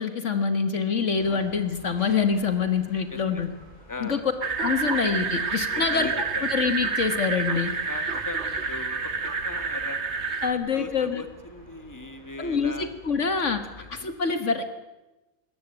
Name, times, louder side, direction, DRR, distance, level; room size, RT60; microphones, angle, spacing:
voice 1, 0.0-3.5 4.0-4.2 4.6-6.1 6.5-7.7 10.4-11.2 12.4-13.6 13.9-14.6, left 5 dB, 65° left, 9 dB, 1.8 m, -25 dB
sound 1, 1.2-14.0, left 1 dB, 35° left, 5.7 m, -49 dB
voice 2, 3.9-4.2 4.9-5.0 5.7-6.5 7.5-10.0 10.5-12.9 14.0-14.1, left 2 dB, 15° left, 7 dB, 2.1 m, -39 dB
sound 2, 4.4-10.5, right 4 dB, 55° right, 1.9 m, -28 dB
21.0 x 19.5 x 9.0 m, 1.0 s
omnidirectional pair, 1.4 m